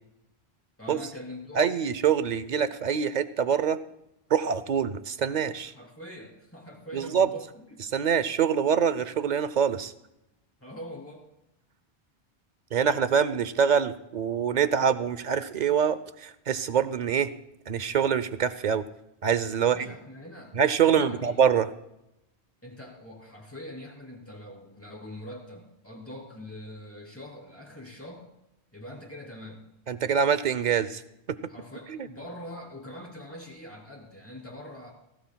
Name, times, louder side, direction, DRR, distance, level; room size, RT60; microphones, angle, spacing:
voice 1, 0.8-1.7 5.6-7.8 10.6-11.3 19.6-20.6 20.9-21.4 22.6-28.3 28.7-29.6 31.5-34.9, left 1 dB, 15° left, -1 dB, 3.2 m, -43 dB
voice 2, 1.5-3.8 4.3-5.7 6.9-7.3 7.9-9.9 12.7-17.3 17.7-18.8 19.2-19.9 20.5-21.7 29.9-31.0 31.9-32.1, right 7 dB, 50° right, 14 dB, 0.7 m, -25 dB
19.0 x 17.0 x 2.3 m, 0.87 s
omnidirectional pair, 1.1 m